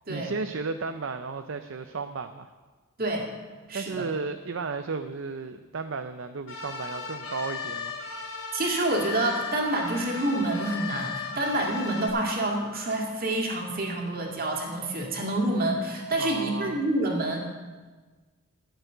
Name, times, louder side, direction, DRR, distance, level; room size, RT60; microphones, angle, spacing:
voice 1, 0.1-2.5 3.7-8.0 16.2-16.8, right 4 dB, 60° right, 8 dB, 0.5 m, -34 dB
voice 2, 3.7-4.1 8.5-17.4, right 1 dB, 40° right, 0 dB, 2.1 m, -27 dB
sound 1, 6.5-12.1, left 5 dB, 70° left, 3.0 m, -36 dB
12.0 x 6.9 x 9.1 m, 1.4 s
head